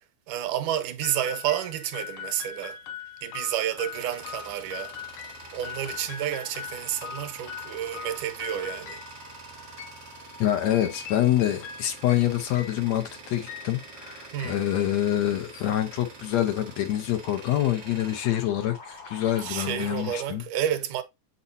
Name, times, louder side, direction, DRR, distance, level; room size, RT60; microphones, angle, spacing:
voice 1, 0.3-2.8 3.2-5.0 5.5-9.0 14.3-14.6 19.4-21.0, right 11 dB, 90° right, 2.2 m, -30 dB
sound 1, 1.0-15.5, left 8 dB, 85° left, 2.5 m, -42 dB
Tools, 3.7-19.2, right 4 dB, 45° right, 1.6 m, -46 dB
sound 2, 5.1-20.3, left 3 dB, 55° left, 3.8 m, -50 dB
voice 2, 10.4-20.4, left 12 dB, 70° left, 1.9 m, -26 dB
8.3 x 4.3 x 2.7 m
omnidirectional pair, 3.6 m